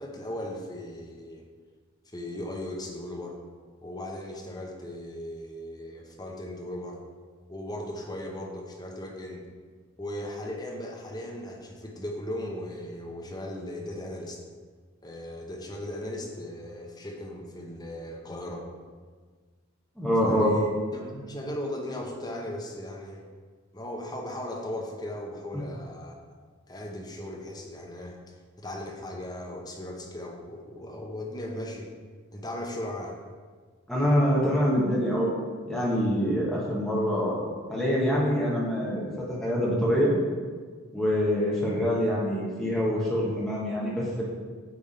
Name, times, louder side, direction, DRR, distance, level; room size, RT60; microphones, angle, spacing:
voice 1, 0.0-1.4 2.1-3.4 3.8-7.0 7.5-9.5 10.0-14.4 15.0-18.7 20.2-23.3 23.7-26.1 26.7-31.9 32.3-33.1, left 1 dB, 20° left, 0 dB, 0.8 m, -37 dB
voice 2, 20.0-20.5 33.9-35.3 35.7-40.1 40.9-44.2, equal, ahead, -6 dB, 1.3 m, -25 dB
8.8 x 3.6 x 4.2 m, 1.6 s
head